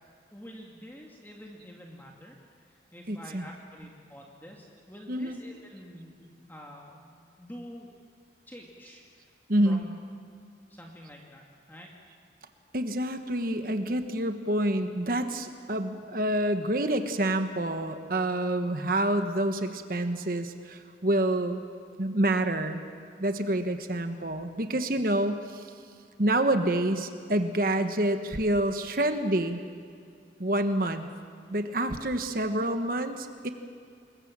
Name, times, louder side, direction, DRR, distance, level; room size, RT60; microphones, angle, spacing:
voice 1, 0.3-7.9 8.5-9.3 9.6-9.9 10.7-11.9, equal, 10° left, -1 dB, 2.2 m, -47 dB
voice 2, 3.1-3.4 5.1-5.4 9.5-9.8 12.7-21.6 22.0-22.8 23.2-25.7 26.2-29.6 30.4-31.1 31.5-33.5, right 1 dB, 50° right, 7 dB, 1.3 m, -27 dB
27.5 x 21.5 x 7.5 m, 2.3 s
head